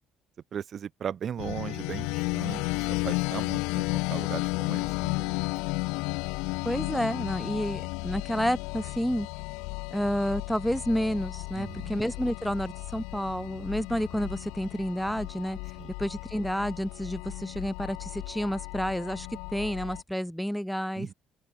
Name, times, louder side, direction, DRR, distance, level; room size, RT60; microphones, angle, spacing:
voice 1, 0.5-5.3 11.6-11.9 15.8-15.9 21.0-21.1, right 8 dB, 55° right, 1.5 m, -38 dB
sound 1, 1.4-20.0, left 27 dB, 75° left, 1.4 m, -33 dB
voice 2, 6.6-9.3 9.9-15.6 16.0-21.1, equal, ahead, 0.8 m, -30 dB
open air
hypercardioid pair, 50°, 0 cm